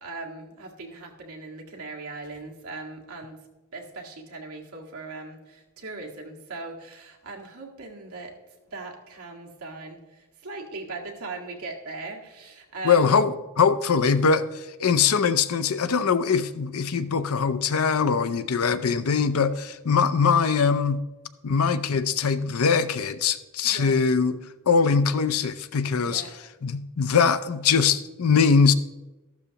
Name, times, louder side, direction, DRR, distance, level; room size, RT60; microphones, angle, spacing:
voice 1, 0.0-3.4 3.7-8.3 8.7-13.2 23.6-23.9 26.0-26.3, right 3 dB, 75° right, -1 dB, 1.7 m, -39 dB
voice 2, 12.8-21.0 21.4-24.4 24.7-26.3 26.6-28.7, left 5 dB, 75° left, 12 dB, 0.6 m, -22 dB
13.5 x 12.0 x 2.9 m, 1.1 s
head